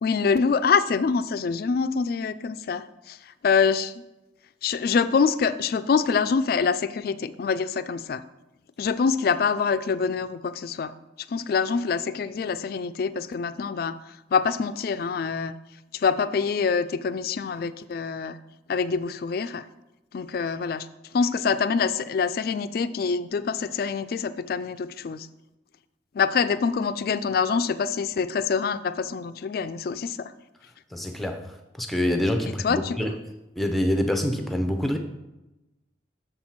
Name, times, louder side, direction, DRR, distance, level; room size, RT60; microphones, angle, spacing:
voice 1, 0.0-3.2 3.4-3.9 4.6-8.2 8.8-10.9 11.3-14.0 14.3-15.6 15.9-18.4 18.7-19.6 20.1-20.9 21.1-25.3 26.1-30.3 32.4-33.0, left 5 dB, 55° left, 13 dB, 0.3 m, -25 dB
voice 2, 30.9-31.4 31.8-33.1 33.6-35.0, left 1 dB, ahead, 5 dB, 0.6 m, -25 dB
6.7 x 4.4 x 5.7 m, 0.98 s
head